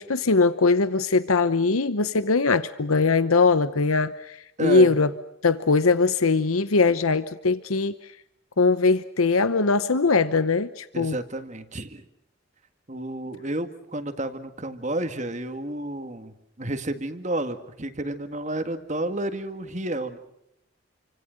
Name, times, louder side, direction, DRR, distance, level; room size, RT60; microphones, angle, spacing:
voice 1, 0.0-5.1 5.4-8.1 8.6-11.2, left 4 dB, 90° left, 13 dB, 0.9 m, -21 dB
voice 2, 4.6-4.9 10.9-12.1 12.9-20.2, right 1 dB, 35° right, 9 dB, 1.9 m, -31 dB
29.0 x 25.5 x 6.5 m, 0.80 s
head